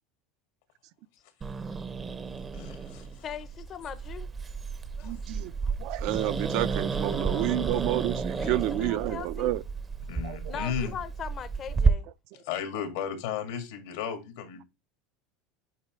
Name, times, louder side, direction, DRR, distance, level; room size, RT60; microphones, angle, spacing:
Growling, 1.4-11.9, right 5 dB, 20° right, 0.6 m, -31 dB
voice 1, 2.5-3.3 5.0-5.1 6.2-6.3 10.1-10.9 12.4-14.6, left 8 dB, 80° left, 1.9 m, -35 dB
voice 2, 3.2-4.3 5.0-5.2 5.6-5.8 7.0-7.8 8.3-9.5 10.5-12.5, left 8 dB, 35° left, 0.6 m, -41 dB
voice 3, 5.0-5.5 5.8-9.6 10.2-10.5, right 15 dB, 60° right, 0.5 m, -30 dB
8.2 x 4.5 x 3.1 m
supercardioid pair, 120°, 0 cm